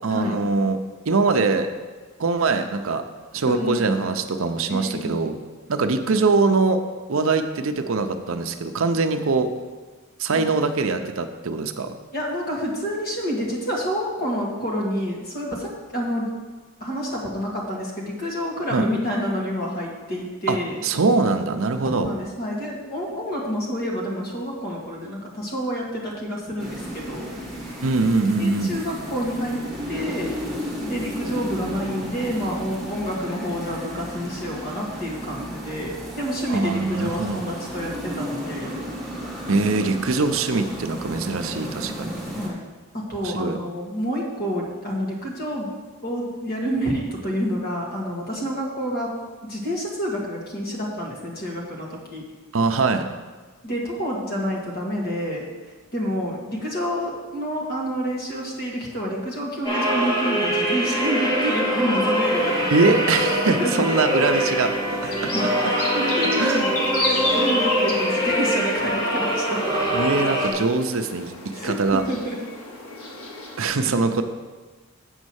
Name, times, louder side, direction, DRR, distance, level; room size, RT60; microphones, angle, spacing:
voice 1, 0.0-0.8 1.1-1.7 2.2-3.0 3.3-5.4 5.7-6.8 7.1-9.5 10.2-11.9 18.7-18.9 20.5-22.1 27.8-28.8 36.5-37.4 39.5-42.1 43.2-43.6 52.5-53.1 62.7-65.7 66.4-66.8 69.9-72.0 73.6-74.2, right 3 dB, 70° right, 7 dB, 0.6 m, -22 dB
voice 2, 3.5-3.9 4.7-5.2 10.3-10.4 12.1-16.3 16.8-20.8 21.9-27.3 28.4-29.6 29.9-30.3 30.8-38.8 42.3-42.6 42.9-45.7 46.0-49.1 49.5-52.3 53.6-55.4 55.9-62.6 63.6-63.8 65.0-69.6 71.5-72.4, equal, 45° left, -3 dB, 1.9 m, -28 dB
sound 1, 26.6-42.5, equal, ahead, 1.5 m, -33 dB
sound 2, 59.6-70.5, equal, 20° left, 1.6 m, -23 dB
sound 3, 62.2-73.7, left 2 dB, 90° left, 1.4 m, -33 dB
7.9 x 5.3 x 6.3 m, 1.3 s
head